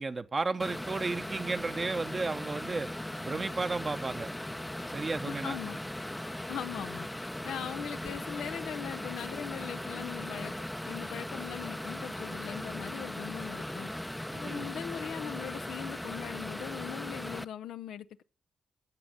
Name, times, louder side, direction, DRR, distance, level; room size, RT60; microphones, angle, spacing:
voice 1, 0.0-2.9 3.2-4.3 4.8-5.6 14.3-14.7, right 3 dB, 40° right, 1.0 m, -33 dB
sound 1, 0.6-17.4, left 1 dB, 10° left, 0.7 m, -38 dB
voice 2, 5.3-5.8 6.5-10.5 10.9-13.9 14.4-18.2, left 10 dB, 75° left, 0.5 m, -40 dB
16.0 x 7.1 x 6.4 m
hypercardioid pair, 40°, 0 cm